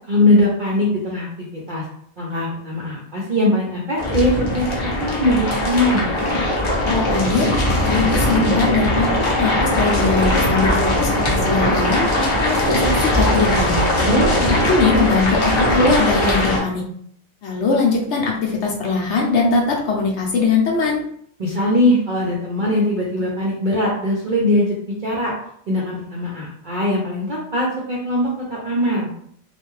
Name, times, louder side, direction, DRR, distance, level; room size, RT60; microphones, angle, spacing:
voice 1, 0.1-1.3 1.7-1.8 2.2-4.7 5.0-6.1 14.0-14.3 21.4-24.7 25.0-25.3 25.7-29.1, left 1 dB, 55° right, -5 dB, 0.5 m, -20 dB
sound 1, 4.0-16.6, left 1 dB, 40° left, 0.4 m, -20 dB
voice 2, 6.8-7.5 7.8-13.8 14.4-16.8 17.4-21.0, left 4 dB, 65° left, -1 dB, 0.8 m, -21 dB
2.4 x 2.2 x 3.1 m, 0.64 s
omnidirectional pair, 1.4 m